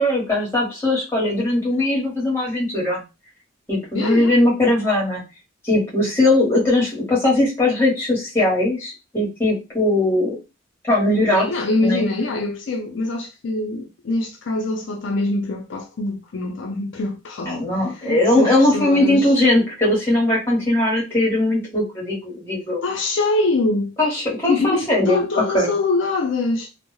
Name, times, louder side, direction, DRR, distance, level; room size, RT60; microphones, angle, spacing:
voice 1, 0.0-3.0 3.7-5.2 5.6-10.4 10.9-11.5 11.8-12.1 17.4-22.8 24.0-25.2 25.5-25.7, left 1 dB, 10° left, 1.0 m, -19 dB
voice 2, 3.9-4.4 11.3-17.5 17.9-19.3 22.8-23.9 24.5-26.7, left 2 dB, 60° left, 0.4 m, -24 dB
2.2 x 2.1 x 3.0 m
head